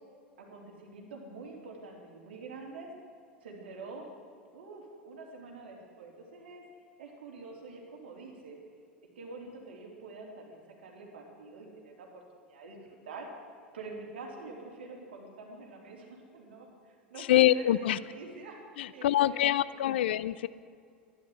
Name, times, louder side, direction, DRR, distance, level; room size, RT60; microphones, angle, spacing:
voice 1, 0.4-2.9 3.4-4.1 4.5-6.6 7.0-8.6 9.1-12.2 12.5-12.8 13.0-13.3 13.7-20.1, right 3 dB, 70° right, 0 dB, 3.5 m, -46 dB
voice 2, 17.2-18.0 18.8-20.5, left 13 dB, 70° left, 18 dB, 0.5 m, -25 dB
12.5 x 11.5 x 9.5 m, 2.2 s
hypercardioid pair, 85°, 6 cm